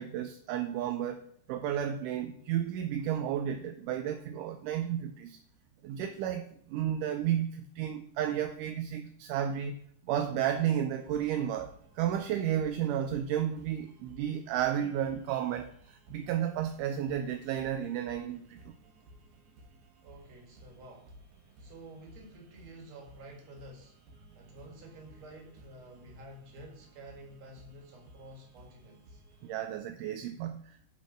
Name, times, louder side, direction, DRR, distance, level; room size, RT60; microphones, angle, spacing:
voice 1, 0.0-5.4 5.8-9.8 10.1-18.7 29.4-30.8, right 10 dB, 85° right, 7 dB, 2.1 m, -32 dB
sound 1, 10.9-29.5, right 1 dB, 65° right, 2.6 m, -57 dB
voice 2, 20.0-21.1 21.6-24.0 24.4-29.2, right 1 dB, 45° right, 1 dB, 2.4 m, -50 dB
8.3 x 4.1 x 6.3 m, 0.63 s
omnidirectional pair, 3.8 m